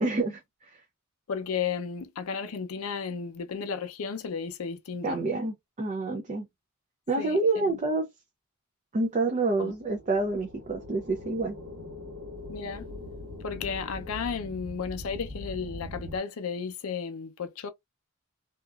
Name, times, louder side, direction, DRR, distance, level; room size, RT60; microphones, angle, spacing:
voice 1, 0.0-0.8 5.0-6.5 7.1-8.1 8.9-11.6, right 3 dB, 30° right, 0.4 m, -28 dB
voice 2, 1.3-5.2 7.2-7.8 9.6-9.7 12.5-12.9 13.4-17.7, left 6 dB, 70° left, 0.5 m, -34 dB
sound 1, 9.4-16.2, left 1 dB, 75° right, 1.4 m, -42 dB
2.8 x 2.3 x 2.3 m
head